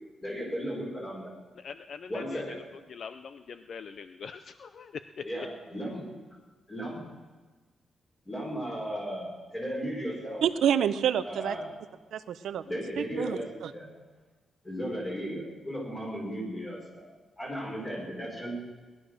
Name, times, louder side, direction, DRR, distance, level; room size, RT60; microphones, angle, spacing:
voice 1, 0.2-1.3 2.1-2.6 5.2-6.0 6.7-7.0 8.2-10.4 11.2-11.7 12.6-13.9 14.6-17.1 17.4-18.6, equal, 20° left, 5.2 m, -35 dB
voice 2, 1.6-2.6 2.9-5.2, left 6 dB, 50° left, 0.5 m, -42 dB
voice 3, 10.4-11.6 12.1-12.6 13.0-13.7, right 9 dB, 90° right, 0.7 m, -28 dB
19.5 x 11.5 x 6.5 m
wide cardioid pair, 160°, 0 cm